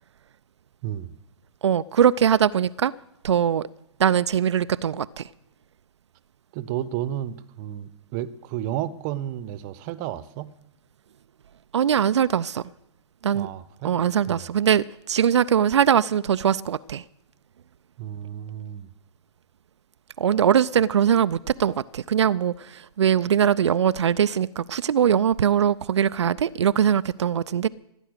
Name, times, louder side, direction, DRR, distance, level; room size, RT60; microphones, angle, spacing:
voice 1, 0.8-1.1 6.5-10.5 13.3-13.9 14.3-14.4 18.0-18.9, right 12 dB, 40° right, 16 dB, 0.9 m, -32 dB
voice 2, 1.6-2.9 3.2-3.6 4.0-5.3 11.7-12.6 13.2-13.5 13.8-17.0 20.2-27.7, right 9 dB, 75° right, 15 dB, 0.5 m, -21 dB
17.5 x 9.9 x 6.5 m, 0.86 s
hypercardioid pair, 120°, 15 cm